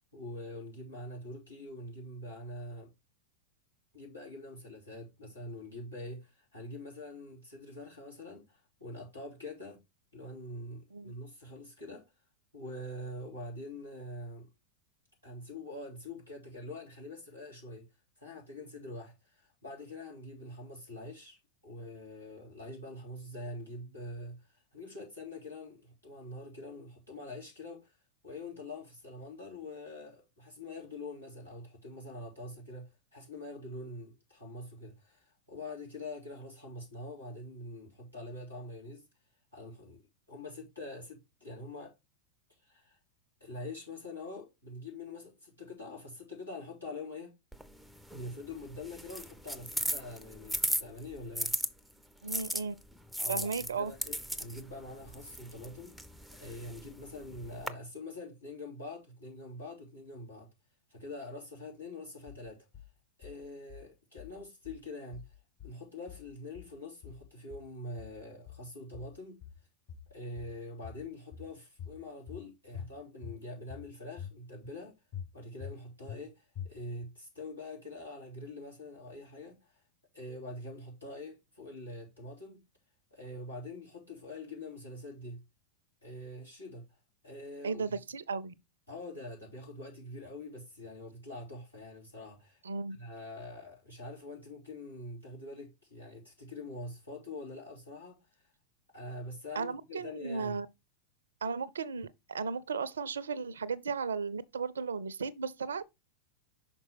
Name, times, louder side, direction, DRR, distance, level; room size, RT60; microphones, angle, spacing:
voice 1, 0.1-2.9 3.9-9.8 10.1-12.1 12.5-14.5 15.2-17.9 18.2-21.4 21.6-28.0 28.2-39.0 39.5-40.0 40.3-41.9 42.6-43.0 43.4-47.3 48.1-51.5 53.2-56.0 56.4-60.5 60.9-62.7 63.2-65.2 65.6-69.4 70.1-74.9 75.3-79.8 80.1-82.6 83.1-85.4 86.0-86.8 87.2-88.0 88.9-92.6 92.9-98.2 98.9-100.6, left 2 dB, 85° left, 3.3 m, -45 dB
sound 1, 47.5-51.7 52.3-57.7, equal, ahead, 0.5 m, -37 dB
voice 2, 52.2-52.7 53.3-53.9 87.6-88.5 92.6-93.0 99.5-100.7 101.4-105.8, right 5 dB, 70° right, 0.5 m, -35 dB
sound 2, 62.3-62.9 63.2-63.9 64.2-64.9 65.1-65.8 66.1-66.8 67.0-67.7 68.0-68.7 68.9-69.6 69.9-70.6 70.8-71.5 71.8-72.4 72.7-73.4 73.7-74.3 74.6-74.8 75.1-75.8 76.1-76.2 76.6-77.1, left 8 dB, 45° left, 1.5 m, -46 dB
6.1 x 4.3 x 4.3 m
figure-of-eight pair, 90°, 0 cm